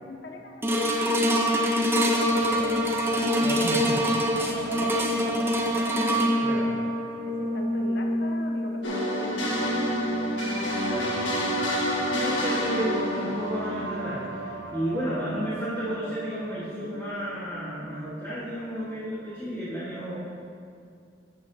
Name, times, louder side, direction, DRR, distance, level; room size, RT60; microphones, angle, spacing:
voice 1, 0.0-2.0 2.3-2.8 3.2-6.9 7.2-9.8, left 2 dB, 65° left, 2 dB, 0.9 m, -40 dB
sound 1, 0.6-11.0 11.6-11.7, equal, 15° right, 0.7 m, -26 dB
sound 2, 2.1-19.4, right 2 dB, 70° right, 0.9 m, -39 dB
voice 2, 3.4-4.0 6.4-6.7 10.9-20.2, equal, 15° left, -11 dB, 1.4 m, -33 dB
sound 3, 8.8-14.6, equal, 85° left, 1.4 m, -29 dB
11.5 x 8.1 x 2.7 m, 2.3 s
head